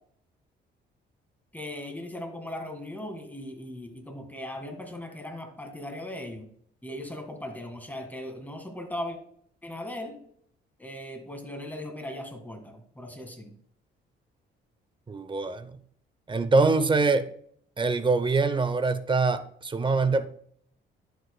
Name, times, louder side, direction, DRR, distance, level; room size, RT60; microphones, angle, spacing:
voice 1, 1.5-6.5 6.8-9.2 9.6-10.2 10.8-13.6, left 1 dB, 10° left, 4 dB, 1.8 m, -38 dB
voice 2, 15.1-15.8 16.3-17.3 17.8-20.3, right 3 dB, 25° right, 11 dB, 0.6 m, -24 dB
11.0 x 8.0 x 2.2 m, 0.64 s
cardioid pair, 90°, 20 cm